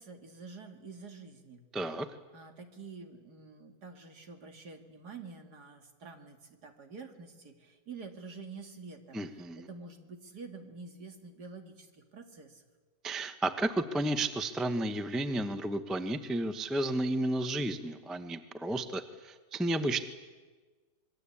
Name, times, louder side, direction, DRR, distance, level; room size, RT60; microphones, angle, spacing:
voice 1, 0.0-1.6 2.3-12.6, right 4 dB, 60° right, 4 dB, 2.8 m, -48 dB
voice 2, 1.7-2.1 9.1-9.7 13.0-20.0, right 1 dB, ahead, 9 dB, 0.7 m, -32 dB
26.0 x 22.0 x 8.6 m, 1.4 s
omnidirectional pair, 1.9 m